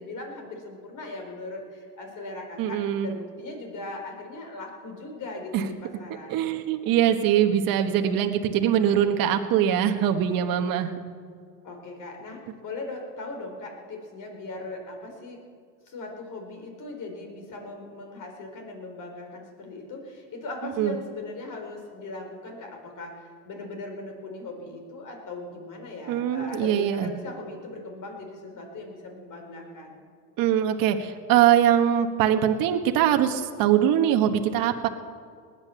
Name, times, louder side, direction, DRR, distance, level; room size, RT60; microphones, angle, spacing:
voice 1, 0.0-6.5 11.6-15.4 15.9-30.0, left 2 dB, 40° left, 3 dB, 4.3 m, -39 dB
voice 2, 2.6-3.1 5.5-5.6 6.3-10.9 20.8-20.9 26.1-27.1 30.4-34.9, right 10 dB, 45° right, 6 dB, 1.4 m, -22 dB
19.5 x 9.0 x 7.1 m, 2.1 s
supercardioid pair, 110°, 47 cm